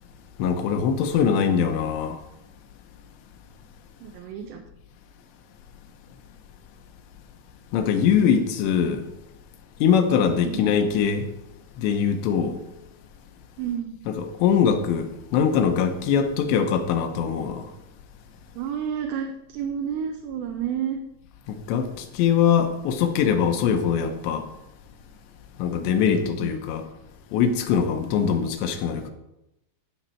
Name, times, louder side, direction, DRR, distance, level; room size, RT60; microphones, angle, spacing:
voice 1, 0.4-2.2 7.7-9.0 9.8-11.3 11.8-12.6 14.4-17.7 21.5-24.5 25.6-26.9 27.3-29.1, left 7 dB, 80° left, 3.0 m, -22 dB
voice 2, 4.0-4.6 10.4-10.8 13.6-14.0 18.6-21.0 26.1-26.6 28.2-28.5, right 8 dB, 80° right, 2.8 m, -31 dB
15.5 x 5.8 x 4.5 m
omnidirectional pair, 5.3 m